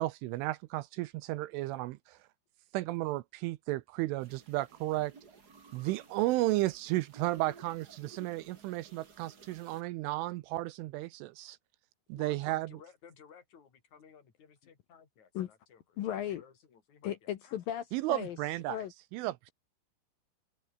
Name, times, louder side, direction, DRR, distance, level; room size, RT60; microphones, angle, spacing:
voice 1, 0.0-2.2 2.7-5.1 5.7-11.6 12.1-12.7 17.9-18.8 19.1-19.5, right 18 dB, 80° right, 3.1 m, -33 dB
sound 1, 4.2-9.8, right 5 dB, 45° right, 1.2 m, -56 dB
voice 2, 12.2-17.3, left 7 dB, 40° left, 4.7 m, -57 dB
voice 3, 16.0-16.4 17.0-18.4 18.7-18.9, left 11 dB, 80° left, 2.0 m, -36 dB
open air
omnidirectional pair, 5.9 m